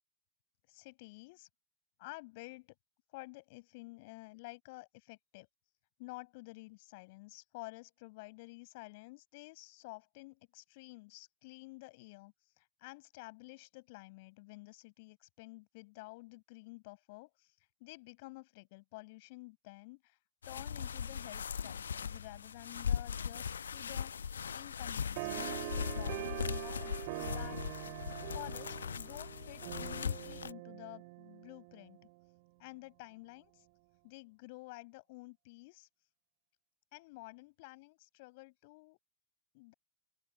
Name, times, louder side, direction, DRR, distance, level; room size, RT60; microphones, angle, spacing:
voice 1, 0.7-1.5 2.0-2.7 3.1-5.5 6.0-20.2 20.5-24.1 24.5-32.0 32.6-33.7 34.0-35.9 36.9-39.0 39.5-39.7, left 24 dB, 50° left, 7.5 m, -51 dB
sound 1, 20.4-30.5, left 7 dB, 70° left, 1.0 m, -39 dB
sound 2, 25.2-32.0, right 28 dB, 45° right, 6.8 m, -44 dB
open air
figure-of-eight pair, 90°, 0 cm